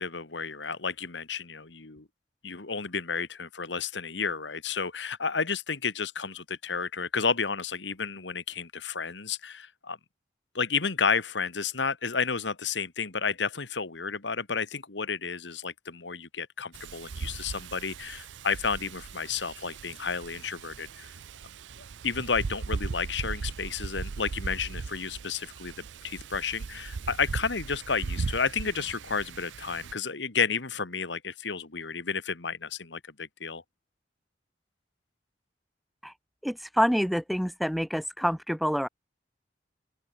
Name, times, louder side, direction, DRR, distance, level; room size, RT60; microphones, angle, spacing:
voice 1, 0.0-2.1 2.4-10.0 10.5-21.1 22.0-33.6, left 5 dB, 75° left, 1.8 m, -31 dB
Wind, 16.7-29.9, right 4 dB, 80° right, 0.5 m, -38 dB
voice 2, 36.4-38.9, equal, ahead, 0.7 m, -27 dB
open air
head